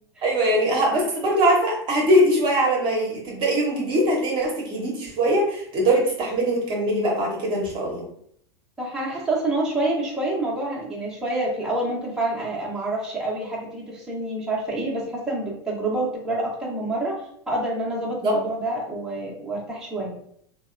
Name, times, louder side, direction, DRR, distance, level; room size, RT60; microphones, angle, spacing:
voice 1, 0.2-8.1 18.2-18.3, right 1 dB, 35° right, -1 dB, 0.8 m, -22 dB
voice 2, 8.8-20.1, right 2 dB, 5° right, -7 dB, 0.8 m, -27 dB
2.8 x 2.1 x 2.4 m, 0.66 s
hypercardioid pair, 95°, 14 cm